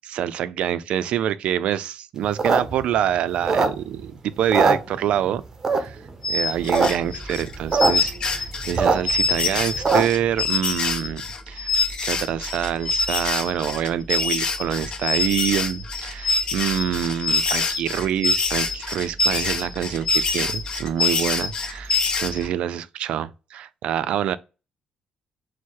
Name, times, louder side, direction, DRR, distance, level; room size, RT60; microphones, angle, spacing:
voice 1, 0.0-5.4 5.7-6.0 6.3-24.4, right 10 dB, 65° right, 0.3 m, -26 dB
sound 1, 2.2-4.1 4.4-5.3 5.6-6.1 6.5-6.9 7.1-7.2 7.4-7.9 8.3-10.3, right 3 dB, 25° right, 0.7 m, -21 dB
sound 2, 6.2-22.5, left 3 dB, 40° left, 0.6 m, -25 dB
sound 3, 6.5-22.4, right 2 dB, 5° left, 0.9 m, -41 dB
4.5 x 2.0 x 4.5 m
cardioid pair, 165°, 2 cm